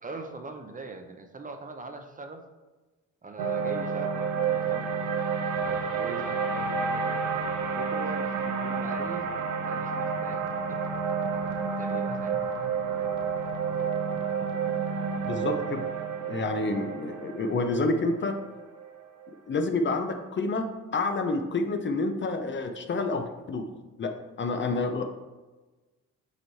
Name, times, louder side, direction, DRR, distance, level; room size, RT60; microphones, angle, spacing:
voice 1, 0.0-2.4 3.2-4.9 5.7-7.3 7.7-9.3 9.5-10.8 11.8-12.5, right 3 dB, 25° right, 5 dB, 0.7 m, -41 dB
sound 1, 3.4-19.6, right 5 dB, 80° right, 0.7 m, -30 dB
voice 2, 15.3-15.9 16.2-18.4 19.5-23.7 24.0-25.0, left 3 dB, 40° left, 6 dB, 0.7 m, -29 dB
8.1 x 3.1 x 4.1 m, 1.2 s
cardioid pair, 90°, 30 cm